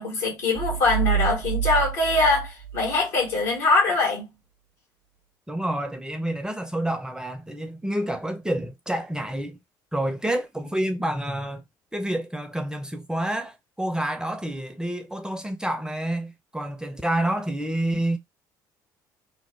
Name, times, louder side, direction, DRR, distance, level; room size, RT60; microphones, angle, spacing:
voice 1, 0.0-4.3, left 3 dB, 75° left, 1.6 m, -23 dB
sound 1, 0.5-3.5, right 10 dB, 60° right, 0.7 m, -28 dB
voice 2, 5.5-9.6 9.9-11.6 11.9-18.2, right 1 dB, 5° right, 0.6 m, -28 dB
2.9 x 2.1 x 3.1 m
hypercardioid pair, 55°, 10 cm